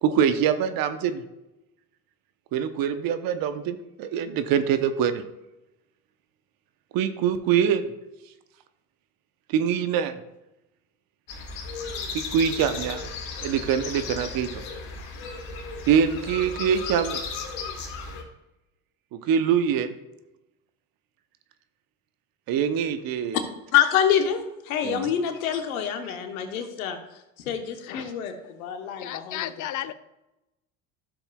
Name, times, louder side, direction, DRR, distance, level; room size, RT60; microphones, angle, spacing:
voice 1, 0.0-1.2 2.5-5.2 6.9-7.8 9.5-10.1 12.1-13.1 13.4-14.5 15.9-17.2 19.1-19.9 22.5-23.4 24.8-25.1, right 8 dB, 55° right, 10 dB, 0.9 m, -24 dB
sound 1, 11.3-18.2, left 4 dB, 65° left, 2.1 m, -35 dB
voice 2, 23.7-24.4 24.6-27.0 27.4-29.4, left 9 dB, 80° left, 6 dB, 1.2 m, -26 dB
voice 3, 29.0-29.9, left 13 dB, 45° left, 14 dB, 0.6 m, -32 dB
13.0 x 7.0 x 2.4 m, 0.94 s
hypercardioid pair, 70°, 42 cm